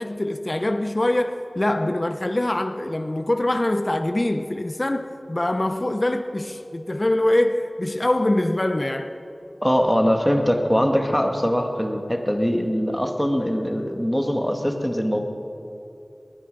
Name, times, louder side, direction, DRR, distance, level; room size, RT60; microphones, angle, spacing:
voice 1, 0.0-9.1, left 1 dB, 40° left, 0.7 m, -24 dB
voice 2, 9.6-15.2, equal, 5° left, 1.9 m, -22 dB
20.5 x 12.0 x 5.4 m
wide cardioid pair, 40°, 0 cm